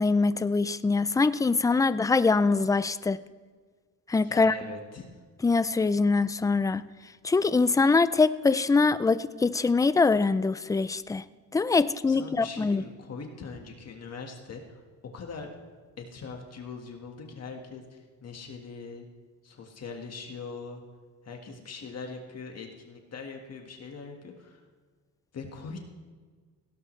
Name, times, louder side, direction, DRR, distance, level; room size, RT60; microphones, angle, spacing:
voice 1, 0.0-3.2 4.1-4.5 5.4-6.8 7.2-11.2 11.5-12.8, left 4 dB, 10° left, 15 dB, 0.3 m, -23 dB
voice 2, 4.2-5.1 12.1-14.8 15.1-15.5 16.0-19.1 19.4-20.8 21.2-24.6 25.3-25.9, left 4 dB, 45° left, 2 dB, 1.6 m, -41 dB
18.0 x 17.0 x 3.2 m, 1.5 s
cardioid pair, 115°, 34 cm